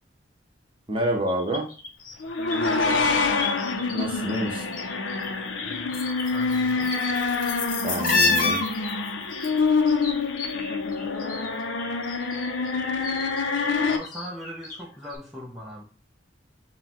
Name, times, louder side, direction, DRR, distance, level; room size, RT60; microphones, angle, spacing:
voice 1, 0.9-1.7 3.9-4.7 7.8-8.6, right 1 dB, 25° right, 0.8 m, -27 dB
sound 1, 1.3-4.0 4.3-5.3 5.6-11.5 11.8-14.8 15.1-15.2, left 3 dB, 50° left, 0.8 m, -30 dB
sound 2, 2.2-14.0, left 4 dB, 80° left, 0.5 m, -26 dB
voice 2, 2.5-3.2 5.6-6.0 6.2-7.0 13.9-15.8, equal, ahead, 0.6 m, -39 dB
6.3 x 2.2 x 2.9 m
head